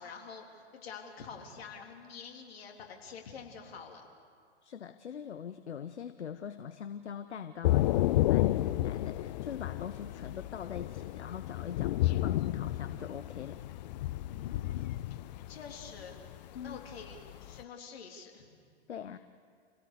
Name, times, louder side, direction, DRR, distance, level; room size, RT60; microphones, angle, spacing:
voice 1, 0.0-4.0 10.1-10.4 14.3-15.0 15.5-16.2 16.6-18.5, left 6 dB, 60° left, 1 dB, 3.5 m, -47 dB
voice 2, 4.6-13.6 16.5-16.8 18.9-19.2, left 8 dB, 80° left, 11 dB, 0.9 m, -42 dB
Thunder / Rain, 7.6-17.6, left 15 dB, 40° left, 0.5 m, -31 dB
28.0 x 17.0 x 6.8 m, 2.2 s
hypercardioid pair, 115°, 34 cm